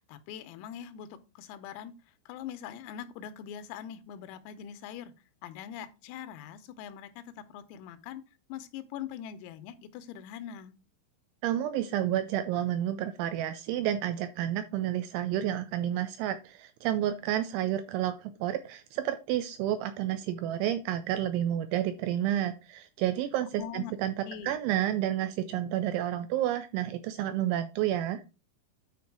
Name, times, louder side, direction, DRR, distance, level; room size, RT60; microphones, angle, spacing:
voice 1, 0.0-1.9 2.3-5.1 5.4-7.2 7.5-8.2 8.5-10.8 23.6-23.9 24.2-24.5, left 9 dB, 85° left, 3.5 m, -42 dB
voice 2, 11.4-28.2, right 12 dB, 85° right, 2.7 m, -30 dB
9.4 x 4.4 x 4.7 m
omnidirectional pair, 5.9 m